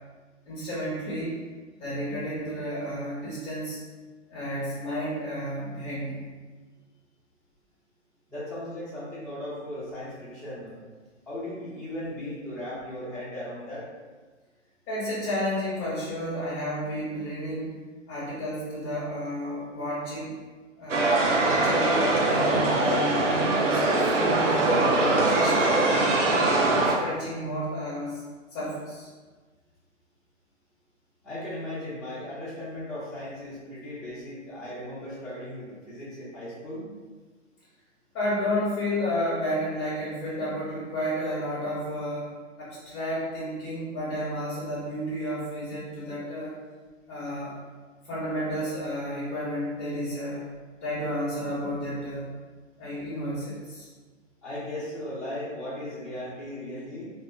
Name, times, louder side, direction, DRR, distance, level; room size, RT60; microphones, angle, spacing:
voice 1, 0.5-1.3 1.8-3.8 4.3-6.2 14.9-17.8 18.1-20.3 20.8-25.6 26.3-28.2 28.5-29.1 38.1-42.3 42.6-46.6 47.1-47.5 48.0-50.4 50.8-52.3 52.8-53.9, equal, 25° left, -9 dB, 0.9 m, -31 dB
voice 2, 8.3-10.8 11.3-13.9 31.2-36.8 54.4-57.1, left 1 dB, ahead, -13 dB, 0.5 m, -37 dB
sound 1, 20.9-26.9, right 2 dB, 70° right, 0.7 m, -22 dB
2.5 x 2.5 x 3.5 m, 1.4 s
hypercardioid pair, 140°, 38 cm